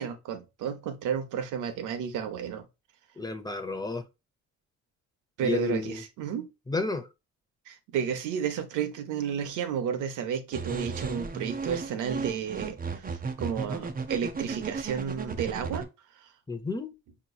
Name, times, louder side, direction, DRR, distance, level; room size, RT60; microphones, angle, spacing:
voice 1, 0.0-2.7 5.4-6.5 7.7-15.9, right 8 dB, 90° right, 0.8 m, -32 dB
voice 2, 3.2-4.0 5.4-6.0 6.7-7.1 16.5-16.9, left 3 dB, 15° left, 0.7 m, -31 dB
sound 1, 10.5-15.8, right 4 dB, 30° right, 0.7 m, -34 dB
5.3 x 3.0 x 2.3 m
cardioid pair, 90°, 30 cm